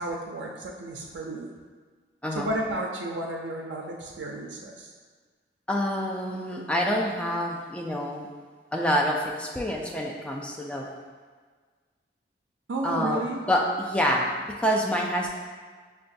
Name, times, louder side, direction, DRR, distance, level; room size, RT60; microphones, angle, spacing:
voice 1, 0.0-1.5 2.3-4.9 12.7-13.4, right 2 dB, 85° right, -1 dB, 0.4 m, -32 dB
voice 2, 5.7-8.3 8.7-10.9 12.8-13.2 13.5-15.3, equal, 5° left, -1 dB, 0.3 m, -27 dB
5.7 x 2.2 x 2.6 m, 1.5 s
head